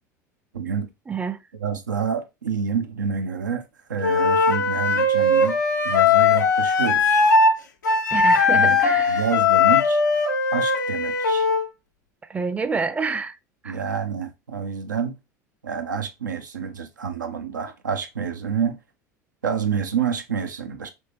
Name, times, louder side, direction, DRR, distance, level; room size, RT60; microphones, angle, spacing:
voice 1, 0.5-0.9 1.5-3.6 3.9-5.6 5.8-7.3 8.5-8.8 9.1-10.0 10.5-11.5 13.7-15.2 15.6-18.8 19.4-20.9, right 6 dB, 85° right, 0.5 m, -28 dB
voice 2, 1.1-1.4 8.1-9.3 12.3-13.4 13.6-13.8, right 4 dB, 15° right, 0.5 m, -28 dB
Wind instrument woodwind instrument, 4.0-7.6 7.8-11.7, left 4 dB, 85° left, 0.7 m, -19 dB
3.6 x 2.9 x 2.9 m
hypercardioid pair, 75°, 10 cm